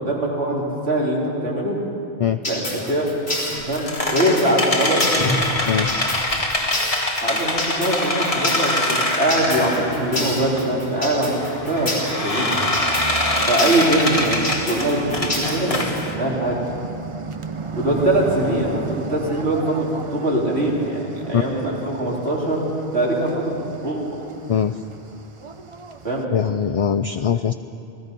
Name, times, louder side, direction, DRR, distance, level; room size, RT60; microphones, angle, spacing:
voice 1, 0.0-1.8 2.5-3.1 3.7-5.2 7.2-12.6 13.5-16.6 17.7-22.6 22.9-24.1 26.0-26.2, right 1 dB, 75° right, -3 dB, 3.8 m, -22 dB
sound 1, 2.4-16.0, left 1 dB, 70° left, 5.5 m, -28 dB
sound 2, 3.4-10.2 10.6-10.7 11.4-16.1, left 1 dB, 35° left, 1.8 m, -24 dB
sound 3, 9.3-26.2, right 4 dB, 35° right, 0.7 m, -34 dB
voice 2, 26.3-27.5, left 8 dB, 50° left, 9 dB, 0.4 m, -21 dB
28.0 x 18.0 x 5.4 m, 2.8 s
omnidirectional pair, 1.1 m